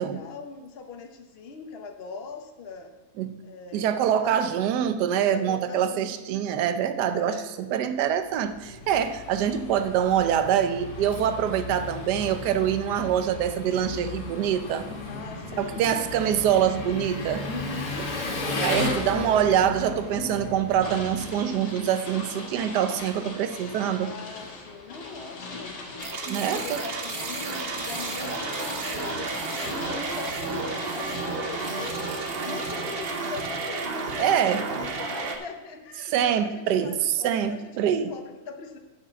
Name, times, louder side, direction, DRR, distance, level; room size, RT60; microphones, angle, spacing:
voice 1, 0.0-2.9 3.4-4.4 5.2-6.4 7.1-7.5 8.6-8.9 12.9-13.1 15.1-15.9 17.5-18.1 18.7-19.0 24.0-25.7 26.2-30.6 30.9-32.0 32.4-38.8, left 4 dB, 50° left, 4 dB, 0.8 m, -41 dB
voice 2, 3.7-14.9 15.6-17.5 18.6-24.1 26.3-26.8 34.2-34.6 36.0-38.1, right 9 dB, 80° right, 10 dB, 1.2 m, -25 dB
Engine, 8.3-21.9, left 2 dB, 70° left, 2.1 m, -35 dB
sound 1, 20.8-33.9, left 3 dB, 85° left, 2.2 m, -39 dB
sound 2, 26.0-35.4, right 4 dB, 45° right, 0.8 m, -32 dB
7.4 x 6.4 x 6.9 m, 1.1 s
omnidirectional pair, 1.8 m